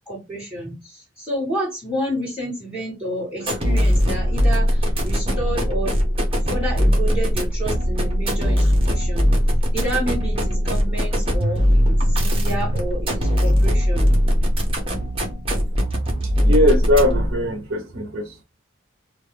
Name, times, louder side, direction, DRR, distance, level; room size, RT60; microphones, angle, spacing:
voice 1, 0.1-6.0 6.5-9.3 9.7-14.1, right 1 dB, 5° right, 1.9 m, -30 dB
sound 1, 3.4-17.4, equal, 30° right, 0.9 m, -20 dB
voice 2, 16.4-18.4, left 1 dB, 60° right, 0.6 m, -20 dB
3.0 x 2.3 x 3.2 m
head